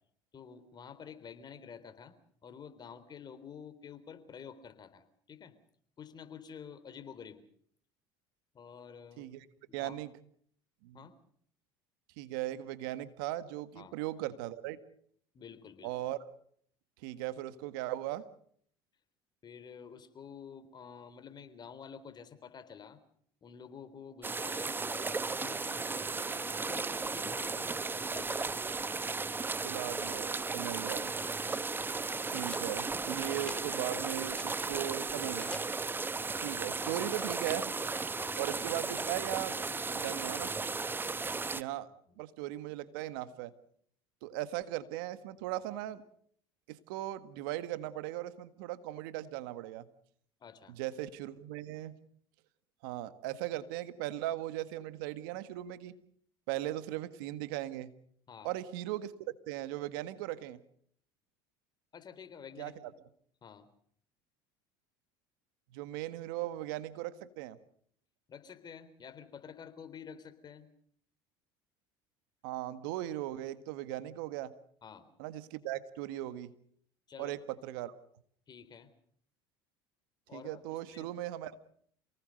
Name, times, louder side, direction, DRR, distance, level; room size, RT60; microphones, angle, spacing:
voice 1, 0.3-2.2 2.4-5.5 6.0-7.4 8.5-9.3 9.7-10.0 10.9-11.2 13.8-13.9 15.3-15.9 19.4-23.0 23.4-28.7 30.8-31.0 36.5-36.7 38.1-38.4 42.1-42.3 50.4-50.8 58.3-58.5 61.9-62.9 63.4-63.7 68.3-70.7 74.8-75.1 77.1-77.4 78.5-78.9 80.3-81.1, left 7 dB, 35° left, 11 dB, 3.8 m, -50 dB
voice 2, 9.7-10.1 10.8-11.0 12.2-14.8 15.8-16.2 17.0-18.2 29.6-31.1 32.3-35.5 36.4-37.7 38.4-39.6 40.0-40.5 41.5-41.9 42.2-43.5 44.2-46.0 46.7-49.9 50.7-51.9 52.8-56.0 56.5-57.9 58.4-60.6 62.6-62.7 65.7-67.6 72.4-74.5 75.2-76.5 77.2-77.9 80.3-81.6, right 14 dB, 75° right, 13 dB, 1.7 m, -38 dB
sound 1, 24.2-41.6, right 4 dB, 20° right, 1.0 m, -35 dB
sound 2, 31.4-31.7 32.4-32.7 33.2-33.6 34.0-34.5 35.1-35.6, left 2 dB, 10° left, 4.6 m, -50 dB
28.5 x 19.0 x 6.6 m, 0.63 s
hypercardioid pair, 85°, 12 cm